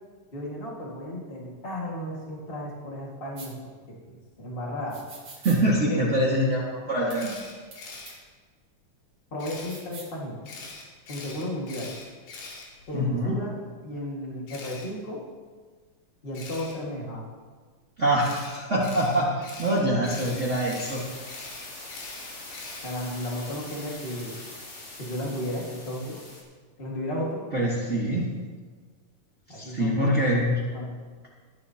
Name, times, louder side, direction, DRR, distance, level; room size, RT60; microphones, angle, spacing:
voice 1, 0.3-5.0 5.9-6.1 9.3-10.4 11.1-12.0 12.9-13.5 13.8-15.2 16.2-17.3 22.8-24.4 25.0-26.2 26.8-27.4 29.5-30.2 30.7-30.9, left 1 dB, 55° left, -3 dB, 0.6 m, -34 dB
sound 1, 3.4-3.5 4.9-5.6 7.1-7.2 7.7-7.8 8.1-8.2 9.5-10.1, right 3 dB, 35° right, 2.9 m, -44 dB
voice 2, 5.4-7.3 12.9-13.4 18.0-21.0 27.5-28.3 29.5-30.6, right 1 dB, 75° right, -6 dB, 0.6 m, -24 dB
Camera, 7.1-8.1 9.4-9.8 10.5-13.2 14.5-14.9 16.3-16.7 18.2-23.1, left 3 dB, 90° left, 3.9 m, -43 dB
sound 2, 20.1-26.4, left 2 dB, 40° left, 2.9 m, -43 dB
18.0 x 10.0 x 2.8 m, 1.5 s
omnidirectional pair, 4.3 m